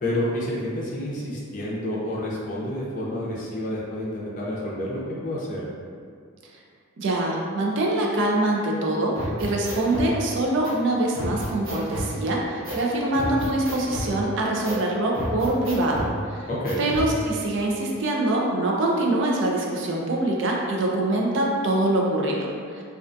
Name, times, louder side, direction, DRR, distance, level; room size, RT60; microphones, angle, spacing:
voice 1, 0.0-5.7 16.5-16.9, left 1 dB, 40° left, -6 dB, 0.5 m, -29 dB
voice 2, 7.0-16.5 16.8-22.8, right 1 dB, 60° right, -1 dB, 0.4 m, -24 dB
sound 1, 9.1-10.1 10.6-10.7 11.1-12.1 12.6-12.8 13.1-14.1 14.6-14.8 15.1-16.1 16.6-17.1, equal, 80° right, 0.9 m, -31 dB
2.3 x 2.2 x 2.5 m, 2.1 s
head